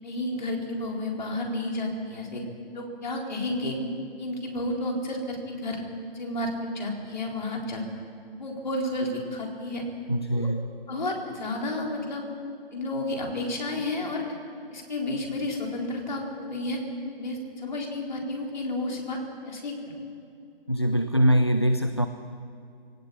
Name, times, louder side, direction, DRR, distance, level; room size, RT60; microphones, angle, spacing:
voice 1, 0.0-2.4 2.7-3.8 4.2-5.8 6.1-7.8 8.4-9.8 10.4-10.5 10.9-12.2 12.7-14.2 14.7-16.8 17.2-19.2 19.4-19.8, left 1 dB, 45° left, 0 dB, 4.1 m, -31 dB
voice 2, 10.1-10.7 20.7-22.1, equal, 30° left, 9 dB, 0.4 m, -23 dB
20.0 x 17.5 x 8.7 m, 2.4 s
hypercardioid pair, 175°, 30 cm